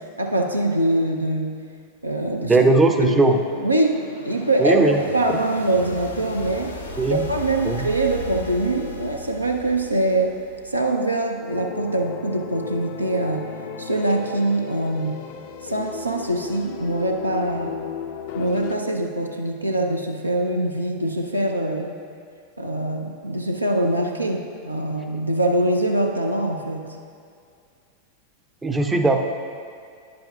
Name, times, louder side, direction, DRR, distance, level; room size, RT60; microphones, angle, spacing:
voice 1, 0.2-1.5 2.0-2.7 3.0-6.7 7.1-10.4 10.6-13.4 13.8-15.2 15.6-17.7 18.3-21.9 22.6-26.8, right 1 dB, 85° right, 2 dB, 0.5 m, -23 dB
voice 2, 2.4-3.4 4.6-5.0 7.0-7.3 7.6-7.9 28.6-29.2, right 2 dB, 15° right, 5 dB, 0.5 m, -18 dB
sound 1, 2.6-11.0, left 1 dB, 75° left, 0.8 m, -37 dB
sound 2, 11.5-18.7, left 6 dB, 50° left, 0.4 m, -35 dB
10.5 x 7.7 x 2.3 m, 2.3 s
figure-of-eight pair, 90°, 0 cm